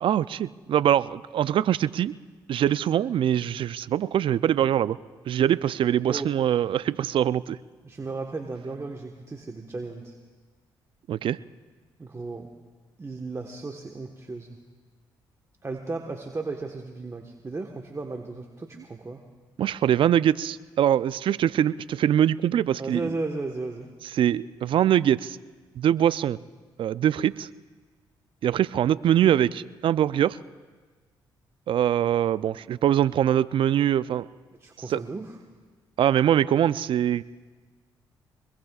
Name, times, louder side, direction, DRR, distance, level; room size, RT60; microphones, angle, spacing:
voice 1, 0.0-2.1 2.5-5.0 5.3-7.6 11.1-11.4 19.6-23.1 24.1-25.4 25.8-26.4 26.8-27.5 28.4-30.4 31.7-34.3 34.9-35.0 36.0-37.2, right 10 dB, 60° right, 18 dB, 0.4 m, -23 dB
voice 2, 7.8-10.2 12.0-12.5 13.0-14.6 15.6-19.2 22.8-23.9 34.6-35.4, right 3 dB, 30° right, 2 dB, 1.3 m, -35 dB
24.5 x 21.5 x 2.4 m, 1.4 s
supercardioid pair, 55°, 10 cm